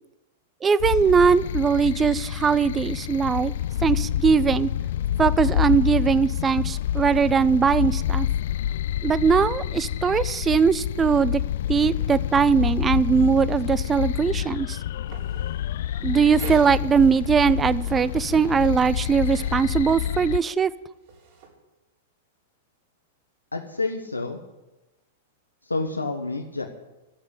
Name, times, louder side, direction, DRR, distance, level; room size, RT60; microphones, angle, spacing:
voice 1, 0.6-3.5 3.8-4.7 5.2-8.3 9.0-11.4 11.7-14.8 16.0-20.7, right 6 dB, 20° right, 18 dB, 0.5 m, -20 dB
sound 1, 0.8-20.4, left 11 dB, 60° left, 0.4 m, -27 dB
sound 2, 14.8-15.8 16.3-16.7 17.7-18.7 19.0-19.6 20.8-21.5, right 5 dB, 50° right, 3.8 m, -43 dB
voice 2, 23.5-24.4 25.6-26.6, left 3 dB, 85° left, 2 dB, 1.2 m, -29 dB
12.0 x 8.1 x 9.9 m, 1.0 s
figure-of-eight pair, 100°, 0 cm